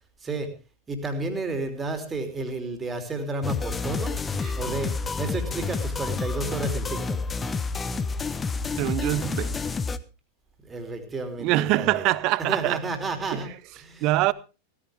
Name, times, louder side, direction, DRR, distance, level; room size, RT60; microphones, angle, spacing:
voice 1, 0.2-0.5 0.9-4.2 4.6-7.2 10.6-12.0 12.5-14.3, right 2 dB, 15° right, 3.2 m, -32 dB
sound 1, 3.4-10.0, left 4 dB, 15° left, 0.9 m, -29 dB
voice 2, 8.8-9.5 11.4-12.8 13.3-13.4 14.0-14.3, right 18 dB, 40° right, 0.7 m, -24 dB
16.5 x 15.0 x 3.6 m
figure-of-eight pair, 90°, 0 cm